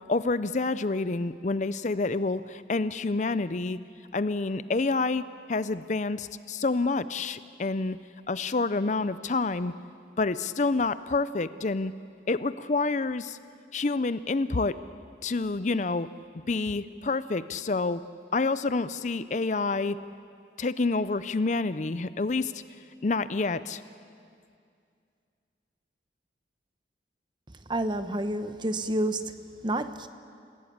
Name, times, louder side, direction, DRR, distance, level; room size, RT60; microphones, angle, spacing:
voice 1, 0.1-3.8 4.1-8.0 8.3-9.7 10.2-11.9 12.3-13.4 13.7-14.7 15.2-16.1 16.5-18.0 18.3-20.0 20.6-22.5 23.0-23.8, left 3 dB, 45° left, 14 dB, 0.6 m, -28 dB
voice 2, 27.7-29.4 29.6-30.1, right 1 dB, 25° right, 10 dB, 0.9 m, -29 dB
29.0 x 16.5 x 8.7 m, 2.3 s
head